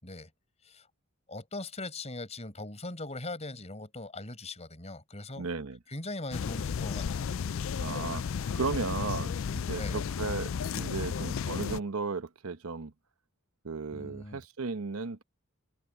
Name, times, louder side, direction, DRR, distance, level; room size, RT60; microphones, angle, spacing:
voice 1, 1.3-5.5 5.9-7.3 9.8-10.0 13.9-14.4, left 2 dB, 30° left, 5.1 m, -40 dB
voice 2, 5.4-5.8 7.8-9.4 9.6-12.9 13.6-15.2, right 4 dB, 85° right, 1.0 m, -35 dB
sound 1, 6.3-11.8, left 6 dB, 65° left, 0.4 m, -33 dB
head